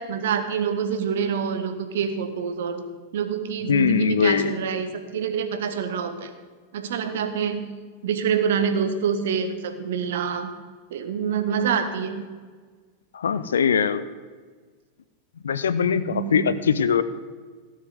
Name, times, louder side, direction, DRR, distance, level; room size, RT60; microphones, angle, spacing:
voice 1, 0.0-2.8 3.1-6.3 6.7-7.6 8.0-10.5 10.9-12.2 16.1-16.6, right 7 dB, 60° right, 8 dB, 1.4 m, -26 dB
voice 2, 3.7-4.5 13.1-14.0 15.4-17.0, left 7 dB, 65° left, 14 dB, 0.7 m, -21 dB
16.5 x 6.5 x 7.8 m, 1.5 s
figure-of-eight pair, 90°, 0 cm